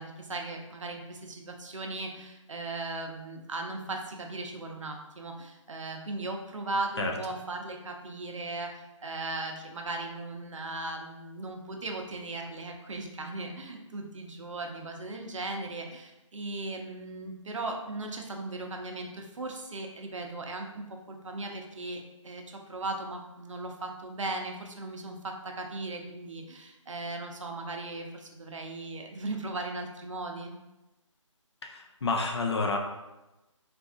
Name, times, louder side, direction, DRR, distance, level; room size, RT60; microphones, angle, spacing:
voice 1, 0.0-30.5, right 2 dB, 70° right, 2 dB, 0.7 m, -37 dB
voice 2, 31.6-32.8, left 3 dB, 55° left, 2 dB, 0.5 m, -29 dB
4.0 x 2.6 x 2.5 m, 1.0 s
figure-of-eight pair, 160°, 17 cm